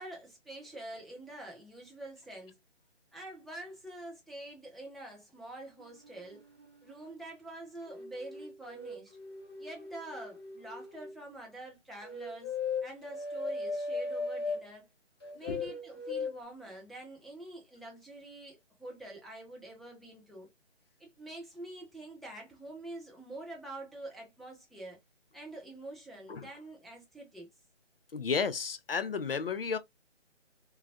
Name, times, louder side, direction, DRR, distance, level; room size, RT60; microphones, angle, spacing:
voice 1, 0.0-2.6 3.1-6.4 6.8-9.2 9.6-14.9 15.3-20.5 21.0-25.0 25.3-27.5, right 1 dB, ahead, 0.4 m, -46 dB
sound 1, 5.8-7.2 7.8-11.2 12.0-14.7 15.2-16.4, left 4 dB, 20° left, 0.9 m, -39 dB
voice 2, 28.1-29.8, left 5 dB, 50° left, 0.5 m, -32 dB
3.8 x 2.2 x 2.7 m
figure-of-eight pair, 170°, 36 cm